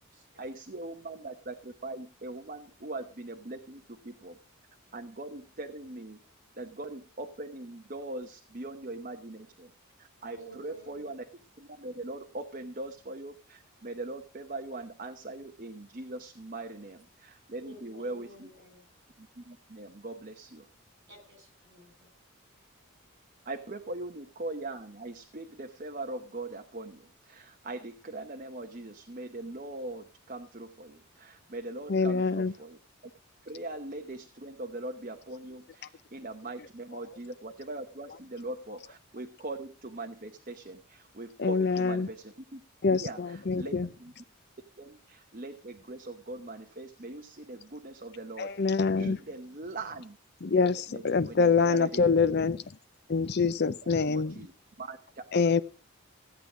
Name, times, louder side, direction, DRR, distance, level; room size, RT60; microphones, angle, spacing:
voice 1, 0.4-4.4 4.9-6.2 6.6-9.7 10.0-11.2 11.6-18.5 19.2-20.7 23.4-33.1 33.4-42.6 42.9-44.1 44.8-50.2 50.6-52.5 53.6-53.8 54.1-54.5 54.8-55.0, right 2 dB, 40° right, 0.9 m, -41 dB
voice 2, 10.3-11.1 17.6-18.9 21.1-22.1, right 1 dB, 55° right, 6.5 m, -52 dB
voice 3, 31.9-32.5 41.4-42.1 42.8-43.9 48.4-49.2 50.4-52.6 53.1-54.4 55.3-55.6, left 4 dB, 50° left, 0.6 m, -25 dB
15.5 x 8.8 x 5.0 m
head